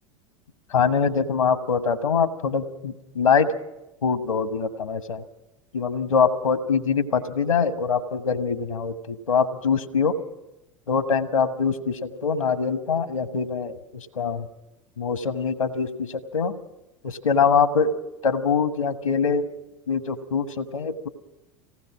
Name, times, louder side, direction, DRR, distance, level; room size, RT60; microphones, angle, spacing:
voice 1, 0.7-3.5 4.0-5.2 5.7-10.1 10.9-14.5 15.0-16.5 17.0-17.9 18.2-19.5 19.9-21.1, left 6 dB, 80° left, 11 dB, 1.4 m, -23 dB
26.0 x 18.0 x 6.0 m, 0.94 s
figure-of-eight pair, 80°, 17 cm